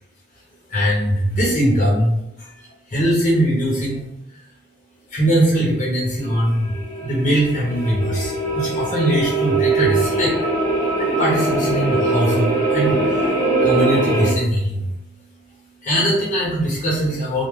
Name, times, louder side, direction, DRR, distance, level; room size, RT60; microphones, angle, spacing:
voice 1, 0.7-2.5 2.9-4.1 5.1-6.8 7.0-10.4 11.0-14.9 15.3-17.4, equal, 40° left, -6 dB, 1.0 m, -21 dB
sound 1, 6.2-14.3, right 2 dB, 15° left, 0.6 m, -21 dB
3.6 x 2.3 x 3.1 m, 0.90 s
head